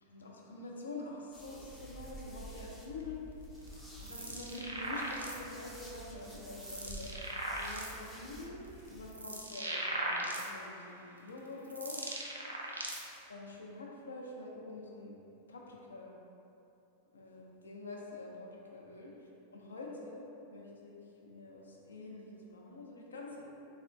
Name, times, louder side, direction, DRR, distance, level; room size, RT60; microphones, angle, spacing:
voice 1, 0.0-3.2 4.0-7.1 7.6-8.6 8.9-12.1 13.3-15.2 15.5-16.2 17.1-19.1 19.5-23.5, left 2 dB, 70° left, -2 dB, 0.4 m, -46 dB
sound 1, 1.3-9.1, right 1 dB, 5° left, 0.4 m, -50 dB
sound 2, 3.6-5.6 6.2-8.1 8.6-10.8 11.4-13.2, right 1 dB, 80° right, 0.3 m, -39 dB
3.5 x 2.1 x 2.4 m, 2.8 s
figure-of-eight pair, 90°, 0 cm